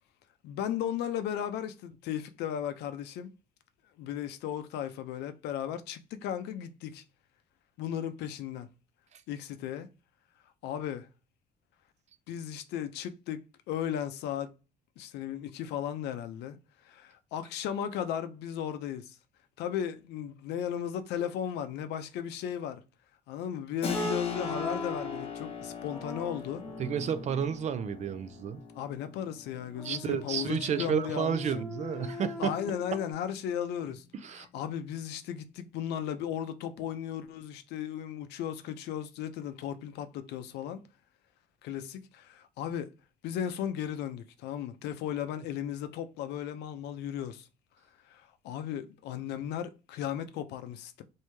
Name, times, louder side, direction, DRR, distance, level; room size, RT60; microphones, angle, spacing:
voice 1, 0.4-3.3 4.0-7.0 7.8-8.7 9.3-9.9 10.6-11.1 12.3-14.5 15.0-16.6 16.8-19.2 19.6-22.8 23.3-26.6 28.7-31.6 32.0-34.0 34.4-40.8 41.6-42.9 43.2-47.5 48.1-51.0, left 9 dB, 80° left, 0.5 m, -36 dB
Keyboard (musical), 23.8-34.2, left 5 dB, 35° left, 0.8 m, -42 dB
sound 1, 23.9-25.3 25.9-27.7 29.8-33.1, left 1 dB, 5° left, 0.6 m, -40 dB
voice 2, 26.8-28.6 29.8-32.5 34.2-34.5, right 7 dB, 45° right, 0.4 m, -31 dB
3.0 x 2.7 x 3.3 m
cardioid pair, 110°, 17 cm